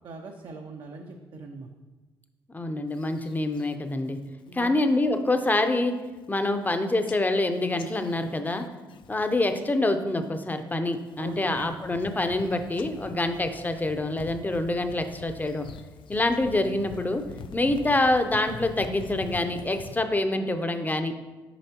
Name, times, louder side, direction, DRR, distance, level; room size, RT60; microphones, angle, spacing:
voice 1, 0.0-1.7 4.5-4.7 11.2-11.7, right 3 dB, 55° right, 2 dB, 0.6 m, -41 dB
voice 2, 2.5-4.2 4.5-6.0 6.3-8.7 9.1-15.7 16.1-17.2 17.5-21.2, left 2 dB, 20° left, 8 dB, 0.6 m, -26 dB
sound 1, 2.9-3.7 4.1-4.5 4.9-5.3 5.7-5.8 6.0-6.7 7.1-9.6 9.9-10.4 10.9-20.0, left 5 dB, 60° left, 0.4 m, -45 dB
7.0 x 4.9 x 2.9 m, 1.2 s
supercardioid pair, 60°, 9 cm